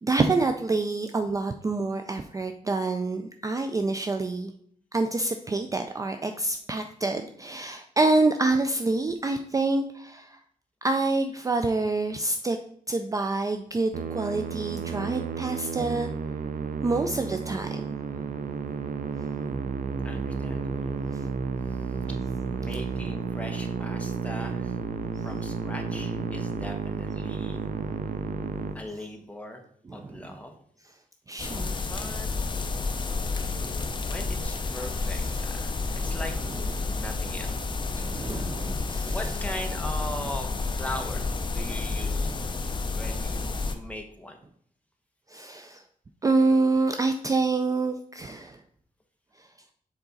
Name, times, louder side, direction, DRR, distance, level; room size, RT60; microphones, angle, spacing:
voice 1, 0.0-4.5 4.9-10.4 10.8-12.6 12.9-16.1 16.8-17.8 18.1-18.3 21.7-22.1 27.8-28.0 29.9-30.2 31.3-31.7 33.4-33.7 34.7-35.4 36.1-36.2 36.7-36.8 38.0-39.3 45.3-45.8 46.2-48.6 49.4-49.5, right 3 dB, 25° right, 7 dB, 0.3 m, -27 dB
Musical instrument, 13.9-28.7, right 5 dB, 80° right, 0.5 m, -32 dB
voice 2, 20.0-21.2 22.5-24.7 25.2-27.6 28.7-29.6 29.9-30.5 31.7-32.3 34.1-35.6 35.9-36.3 36.9-37.6 39.0-42.3 42.9-44.4, left 1 dB, 10° left, 3 dB, 0.8 m, -39 dB
sound 1, 31.4-43.7, left 3 dB, 35° left, 0.5 m, -30 dB
7.0 x 4.0 x 3.9 m, 0.64 s
wide cardioid pair, 160°, 14 cm